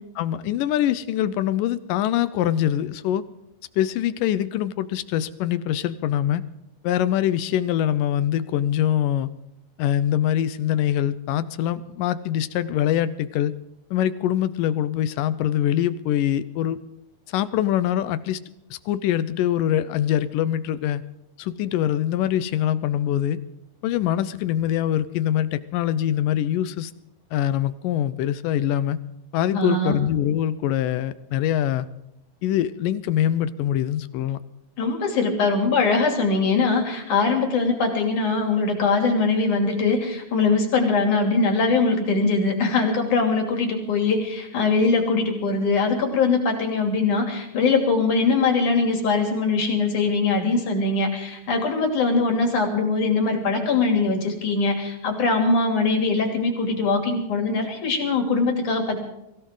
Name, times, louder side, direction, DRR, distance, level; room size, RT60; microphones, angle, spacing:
voice 1, 0.2-3.2 3.8-6.4 6.8-9.3 9.8-13.5 13.9-16.8 17.3-18.4 18.7-21.0 21.4-23.4 23.8-26.9 27.3-29.0 29.3-31.9 32.4-34.4, left 11 dB, 80° left, 14 dB, 2.4 m, -23 dB
voice 2, 29.5-30.0 34.8-59.0, left 4 dB, 65° left, 3 dB, 4.3 m, -22 dB
23.0 x 16.0 x 3.8 m, 0.83 s
omnidirectional pair, 3.9 m